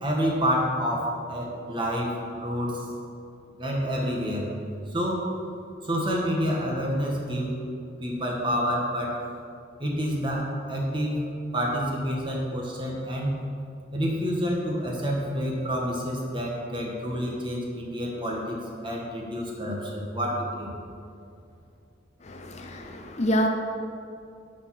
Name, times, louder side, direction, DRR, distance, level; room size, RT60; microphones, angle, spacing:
voice 1, 0.0-2.9 3.6-4.5 4.9-5.2 5.8-7.6 8.0-9.2 9.8-13.3 13.9-18.6 18.8-20.7, equal, 25° right, -2 dB, 1.6 m, -28 dB
voice 2, 22.2-23.5, equal, 35° left, 4 dB, 0.5 m, -27 dB
10.0 x 5.2 x 6.4 m, 2.5 s
head